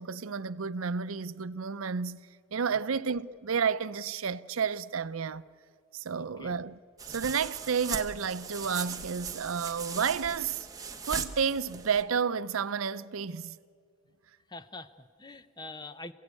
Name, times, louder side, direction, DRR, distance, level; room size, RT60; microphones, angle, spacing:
voice 1, 0.0-5.4 5.9-6.8 7.1-10.7 11.0-13.5, right 6 dB, 90° right, 0.6 m, -31 dB
voice 2, 6.2-6.6 14.5-16.1, left 2 dB, 20° left, 0.7 m, -45 dB
sound 1, 7.0-12.0, right 5 dB, 15° right, 1.0 m, -39 dB
28.5 x 16.0 x 8.3 m
head